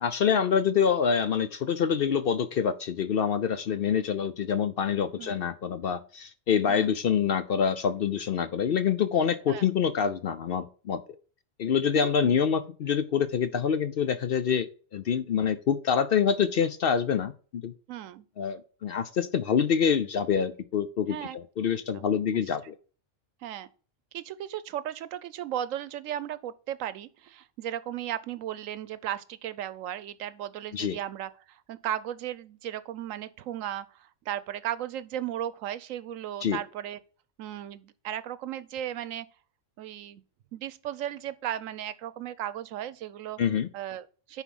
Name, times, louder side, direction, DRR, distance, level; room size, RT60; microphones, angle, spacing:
voice 1, 0.0-11.0 11.6-17.7 18.4-22.7 30.7-31.0 36.4-36.6 43.4-43.7, left 7 dB, 60° left, 0.7 m, -26 dB
voice 2, 11.9-12.4 17.9-18.2 21.1-21.4 21.7-22.1 22.3-22.4 23.4-23.7 24.1-37.0 37.4-39.3 39.8-40.2 40.5-43.4 43.7-44.4, right 11 dB, 90° right, 1.0 m, -36 dB
10.0 x 4.1 x 3.6 m
omnidirectional pair, 1.3 m